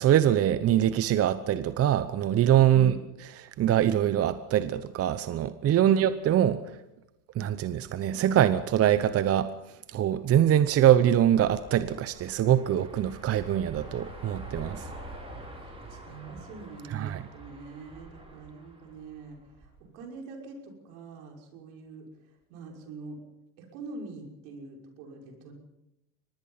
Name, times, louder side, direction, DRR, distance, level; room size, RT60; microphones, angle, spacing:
voice 1, 0.0-2.9 3.4-6.6 7.3-14.9 16.9-17.2, right 11 dB, 30° right, 13 dB, 0.9 m, -24 dB
sound 1, 11.2-19.8, right 1 dB, 10° right, 5.9 m, -46 dB
voice 2, 15.6-22.1 22.5-23.2 23.6-25.5, right 4 dB, 70° right, 2 dB, 6.2 m, -44 dB
24.5 x 19.5 x 5.7 m, 0.91 s
supercardioid pair, 105°, 45 cm